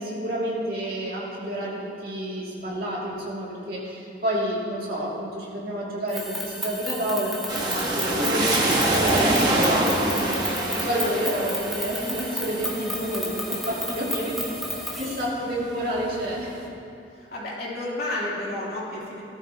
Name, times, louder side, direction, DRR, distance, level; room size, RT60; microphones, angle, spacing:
voice 1, 0.0-16.5, equal, 50° right, -5 dB, 2.6 m, -29 dB
sound 1, 6.1-15.3, equal, ahead, 1.3 m, -33 dB
sound 2, 7.5-15.1 15.6-16.4, right 1 dB, 20° right, 1.3 m, -26 dB
voice 2, 17.1-19.2, left 1 dB, 55° left, -7 dB, 3.2 m, -31 dB
17.5 x 13.0 x 3.0 m, 2.8 s
head